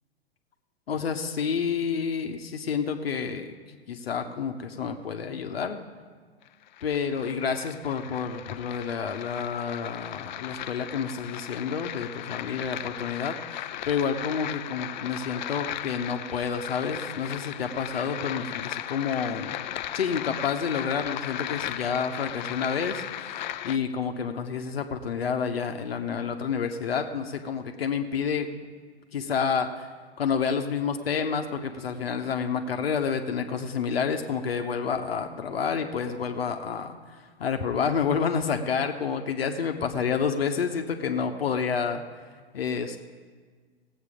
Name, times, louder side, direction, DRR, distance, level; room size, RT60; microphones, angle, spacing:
voice 1, 0.9-3.6 3.9-5.8 6.8-19.6 19.9-28.5 29.1-29.9 30.2-37.0 37.4-42.0 42.5-43.0, left 6 dB, 65° left, 5 dB, 1.0 m, -29 dB
sound 1, 6.4-23.8, left 12 dB, 45° left, 0.5 m, -37 dB
17.5 x 8.1 x 5.0 m, 1.5 s
figure-of-eight pair, 110°, 32 cm